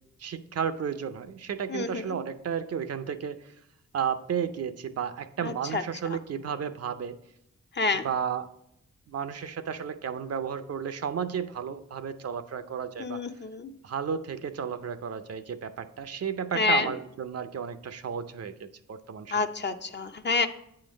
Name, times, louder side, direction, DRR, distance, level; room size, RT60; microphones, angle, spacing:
voice 1, 0.2-3.5 3.9-7.2 7.9-8.5 9.1-13.2 13.8-19.5, right 7 dB, 55° right, 11 dB, 0.5 m, -33 dB
voice 2, 13.0-13.7 16.6-16.9 19.3-20.5, left 4 dB, 35° left, 8 dB, 0.6 m, -27 dB
8.4 x 3.8 x 5.0 m, 0.78 s
cardioid pair, 50°, 30 cm